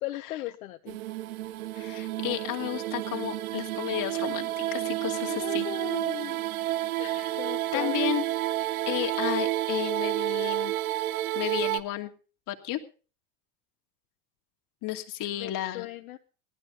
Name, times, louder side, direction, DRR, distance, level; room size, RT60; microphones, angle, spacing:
voice 1, 0.0-1.0 5.3-6.4 7.0-7.9 15.4-16.2, left 15 dB, 70° left, 7 dB, 1.2 m, -37 dB
sound 1, 0.9-11.8, right 15 dB, 75° right, 0.9 m, -30 dB
voice 2, 1.7-5.7 7.2-7.3 7.7-8.2 8.9-10.7 11.3-12.1 12.5-12.8 14.8-15.9, left 15 dB, 45° left, 5 dB, 2.5 m, -32 dB
19.0 x 12.5 x 3.9 m, 0.38 s
hypercardioid pair, 85°, 43 cm